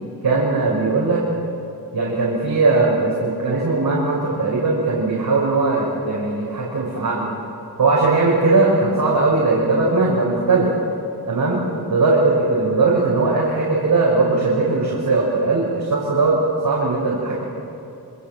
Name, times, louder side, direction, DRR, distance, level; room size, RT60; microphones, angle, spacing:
voice 1, 0.2-1.2 1.9-7.3 7.8-10.7 11.3-16.4 16.6-17.4, right 3 dB, 65° right, -5 dB, 6.4 m, -19 dB
28.0 x 26.0 x 7.8 m, 2.9 s
wide cardioid pair, 95°, 39 cm